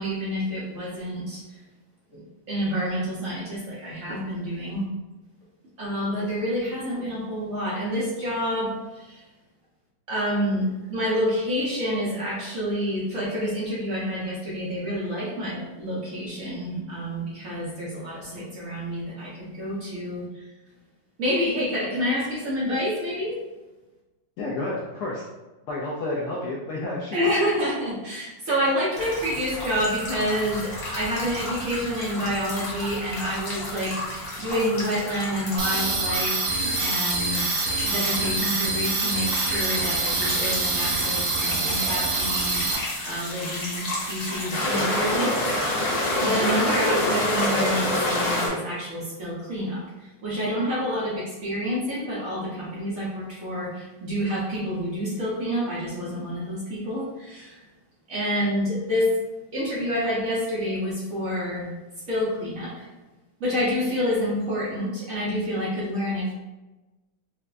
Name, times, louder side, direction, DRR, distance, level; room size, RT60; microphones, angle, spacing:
voice 1, 0.0-1.4 2.1-2.2 2.5-4.9 5.8-9.2 10.1-20.3 21.2-23.4 27.1-45.4 46.2-57.6 58.1-59.1 59.5-61.7 62.1-62.9 63.4-66.3, equal, 55° right, -8 dB, 1.0 m, -28 dB
voice 2, 24.4-25.3 25.7-27.2, left 2 dB, 75° left, -5 dB, 0.9 m, -30 dB
sound 1, 29.0-48.5, left 1 dB, 55° left, 1.4 m, -29 dB
sound 2, 35.6-42.8, right 3 dB, 85° right, 1.6 m, -26 dB
4.5 x 2.1 x 2.4 m, 1.1 s
omnidirectional pair, 2.2 m